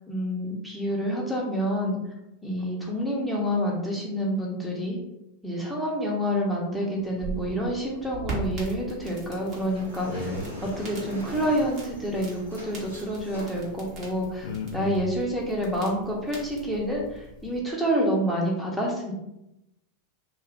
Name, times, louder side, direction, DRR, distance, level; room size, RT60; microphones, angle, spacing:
voice 1, 0.1-2.0 2.4-5.0 5.4-10.2 10.6-14.5 14.7-19.1, equal, 5° right, -3 dB, 0.9 m, -28 dB
sound 1, 7.0-17.6, right 3 dB, 40° right, 1.1 m, -41 dB
sound 2, 9.4-14.7, left 1 dB, 80° right, 0.7 m, -42 dB
voice 2, 9.7-10.6 14.4-15.0, left 3 dB, 65° left, 1 dB, 0.5 m, -34 dB
2.4 x 2.4 x 3.6 m, 0.88 s
figure-of-eight pair, 90°, 0 cm